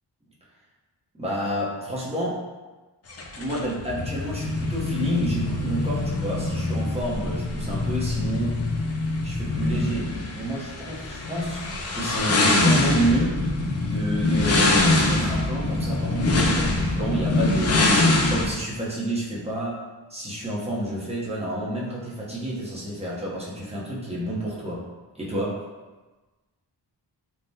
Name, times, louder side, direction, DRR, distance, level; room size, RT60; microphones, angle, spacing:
voice 1, 1.2-2.4 3.3-8.6 9.2-11.6 11.9-13.4 13.8-17.9 18.3-19.8 20.1-24.8 25.2-25.6, right 1 dB, 15° right, -6 dB, 0.7 m, -29 dB
sound 1, 3.1-18.5, left 2 dB, 40° left, 0.4 m, -24 dB
3.3 x 2.1 x 2.6 m, 1.2 s
wide cardioid pair, 95°, 42 cm